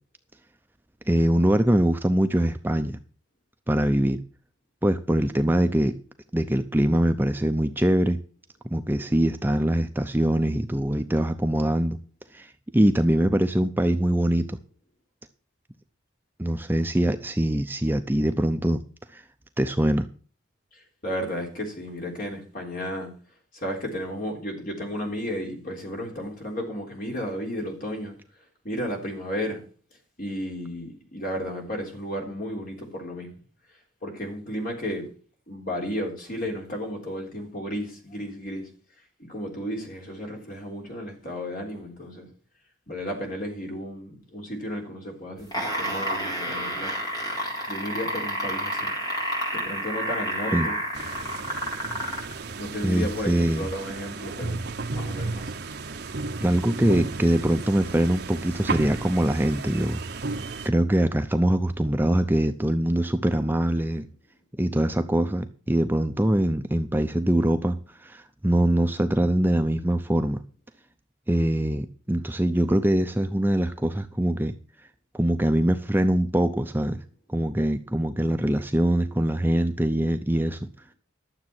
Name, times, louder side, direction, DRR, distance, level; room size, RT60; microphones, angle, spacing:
voice 1, 1.1-3.0 3.7-4.2 4.8-6.0 6.3-8.2 8.7-12.0 12.3-14.6 16.4-18.8 19.1-19.2 19.6-20.0 50.5-50.7 52.8-53.7 56.4-60.2 60.6-64.1 64.6-70.4 71.3-74.5 75.1-77.0 77.3-80.7, right 1 dB, 10° right, 0.5 m, -23 dB
voice 2, 21.0-23.1 23.5-28.1 28.6-29.6 30.2-33.3 34.0-35.1 35.5-38.7 39.2-42.3 42.9-47.0 47.7-48.9 49.5-50.8 52.6-54.6 54.9-55.5, equal, 45° left, 3.6 m, -33 dB
sound 1, 45.4-52.3 53.2-53.3, equal, 20° left, 4.0 m, -29 dB
sound 2, 50.9-60.7, right 3 dB, 55° right, 0.9 m, -34 dB
12.0 x 7.3 x 6.0 m
head